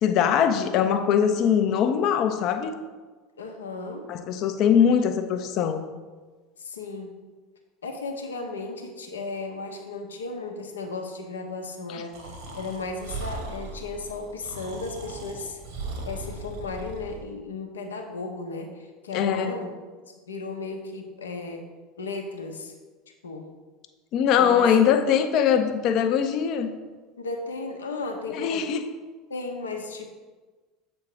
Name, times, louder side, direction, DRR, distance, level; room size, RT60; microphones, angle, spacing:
voice 1, 0.0-2.8 4.1-5.9 11.9-12.0 19.1-19.6 24.1-26.7 28.3-28.8, left 8 dB, 50° left, 8 dB, 0.6 m, -22 dB
voice 2, 3.4-4.1 6.6-7.2 7.8-12.3 12.5-15.6 16.0-19.7 20.3-21.6 22.0-22.7 23.2-23.5 24.4-24.7 27.2-28.7 29.3-30.1, left 3 dB, 80° left, 3 dB, 0.9 m, -35 dB
Breathing, 12.1-17.2, right 2 dB, 65° right, 1.4 m, -38 dB
7.5 x 4.3 x 4.9 m, 1.3 s
figure-of-eight pair, 75°, 0 cm